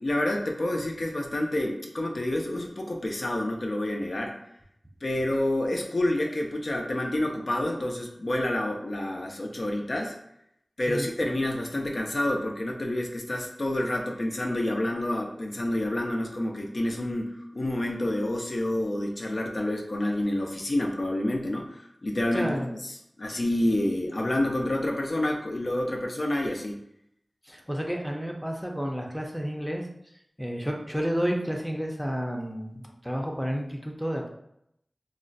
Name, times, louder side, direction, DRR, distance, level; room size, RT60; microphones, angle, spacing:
voice 1, 0.0-4.4 5.0-10.2 10.8-22.9 23.2-26.8, left 1 dB, 65° left, 0 dB, 0.5 m, -28 dB
voice 2, 22.3-22.7 27.5-29.9 30.4-34.3, equal, ahead, 0 dB, 0.5 m, -31 dB
2.4 x 2.1 x 3.9 m, 0.77 s
wide cardioid pair, 50°, 0 cm